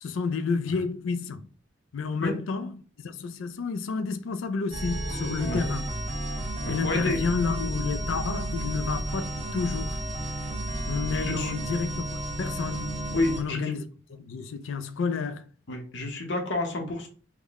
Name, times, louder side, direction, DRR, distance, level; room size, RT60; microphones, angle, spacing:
voice 1, 0.0-1.5 1.9-5.9 6.7-10.0 10.9-13.1 13.4-13.8 14.1-15.4, left 4 dB, 80° left, 0.4 m, -30 dB
sound 1, 4.7-13.4, right 1 dB, 35° right, 0.7 m, -32 dB
voice 2, 6.8-7.2 11.1-11.5 13.1-13.7 15.7-17.1, left 2 dB, 65° left, 0.9 m, -29 dB
3.6 x 2.1 x 3.5 m
head